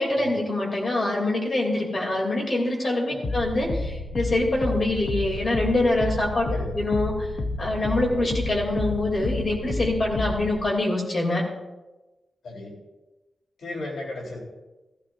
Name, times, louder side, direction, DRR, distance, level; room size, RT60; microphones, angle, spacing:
voice 1, 0.0-6.4 6.7-7.3 7.6-11.5, left 2 dB, 35° left, -1 dB, 3.0 m, -25 dB
sound 1, 3.2-10.6, left 2 dB, 55° left, 0.8 m, -31 dB
voice 2, 12.4-12.8 13.6-14.4, left 2 dB, 85° left, -2 dB, 4.0 m, -35 dB
15.5 x 15.0 x 2.7 m, 1.1 s
wide cardioid pair, 170°, 0 cm